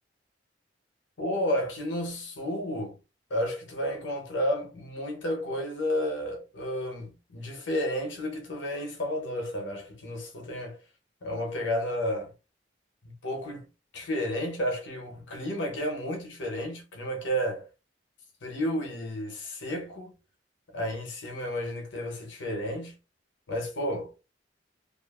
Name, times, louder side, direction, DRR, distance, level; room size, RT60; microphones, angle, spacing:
voice 1, 1.2-3.0 3.3-10.8 11.2-12.3 13.0-13.7 13.9-17.7 18.4-20.1 20.7-23.0 23.5-24.1, equal, 80° left, 0.8 m, -32 dB
2.5 x 2.4 x 2.3 m
head